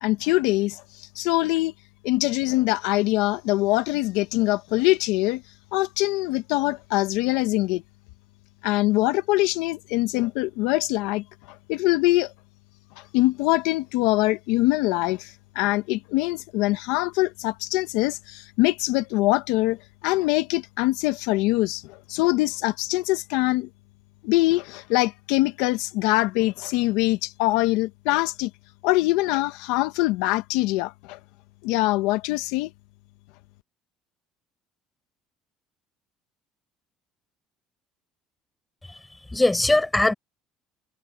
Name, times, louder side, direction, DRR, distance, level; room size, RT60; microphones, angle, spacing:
voice 1, 0.0-1.7 2.0-5.4 5.7-7.8 8.6-11.2 11.7-12.3 13.1-19.8 20.0-23.7 24.2-28.5 28.8-31.2 31.6-32.7, left 19 dB, 85° left, 1.0 m, -23 dB
voice 2, 38.8-40.1, left 2 dB, 10° left, 6.3 m, -22 dB
supercardioid pair, 100°, 0 cm